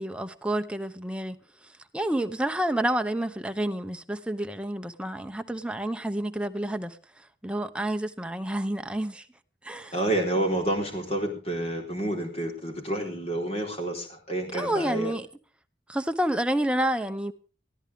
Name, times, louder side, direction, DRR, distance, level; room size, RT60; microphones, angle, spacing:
voice 1, 0.0-1.4 1.9-7.0 7.4-9.2 9.6-9.9 14.5-15.3 15.9-17.3, right 1 dB, 5° right, 0.8 m, -29 dB
voice 2, 9.9-15.1, right 1 dB, 35° left, 4.2 m, -29 dB
22.0 x 14.5 x 3.6 m
head